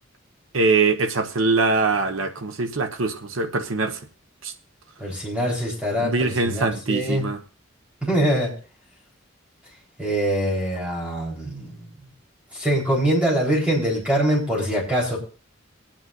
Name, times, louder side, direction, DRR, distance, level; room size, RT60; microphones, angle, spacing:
voice 1, 0.5-4.0 4.4-4.5 6.0-7.4, right 3 dB, 85° right, 6 dB, 1.0 m, -23 dB
voice 2, 5.0-7.2 8.0-8.5 10.0-11.9 12.5-15.2, right 1 dB, 5° right, -4 dB, 4.1 m, -23 dB
22.0 x 8.9 x 2.6 m, 0.36 s
head